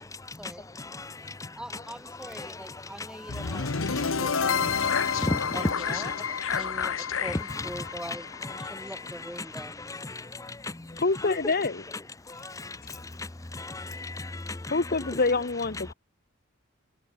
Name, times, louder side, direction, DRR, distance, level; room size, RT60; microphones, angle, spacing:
voice 1, 0.0-1.6 2.2-4.2 4.6-5.6 6.0-6.6 8.4-8.9 9.5-11.0 11.4-11.5 12.3-14.8, left 2 dB, 15° left, 0.7 m, -38 dB
voice 2, 1.6-4.9 5.5-6.2 6.5-10.1, equal, 5° right, 4.5 m, -42 dB
sound 1, 3.3-9.4, left 6 dB, 80° left, 1.1 m, -29 dB
voice 3, 10.9-11.8 12.8-13.0 14.7-15.9, left 3 dB, 50° left, 1.2 m, -26 dB
head